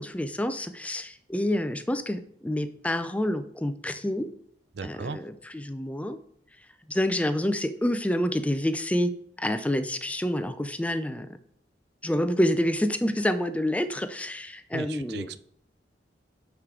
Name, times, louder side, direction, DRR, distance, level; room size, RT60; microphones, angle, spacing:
voice 1, 0.0-4.3 4.8-6.2 6.9-11.3 12.0-15.3, left 1 dB, 10° left, 10 dB, 0.4 m, -28 dB
voice 2, 4.7-5.2 14.7-15.4, right 4 dB, 65° right, 13 dB, 0.5 m, -36 dB
10.5 x 4.8 x 3.7 m, 0.67 s
head